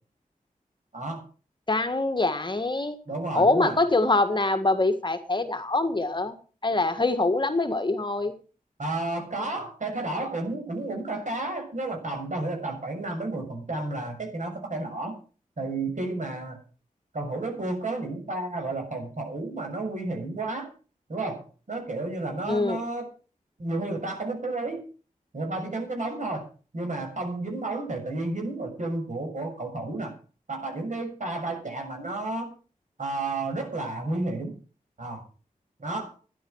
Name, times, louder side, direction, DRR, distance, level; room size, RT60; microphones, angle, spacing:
voice 1, 0.9-1.2 3.1-3.8 8.8-15.2 15.6-16.6 17.1-20.7 21.1-23.1 23.6-24.8 25.3-26.4 26.7-30.1 30.5-32.5 33.0-34.5 35.0-35.2 35.8-36.1, right 2 dB, 60° right, 3 dB, 6.6 m, -31 dB
voice 2, 1.7-3.0 3.3-6.3 6.6-8.3 22.5-22.8, left 2 dB, 35° left, 7 dB, 1.8 m, -24 dB
13.5 x 10.5 x 6.4 m, 0.38 s
wide cardioid pair, 80°, 14 cm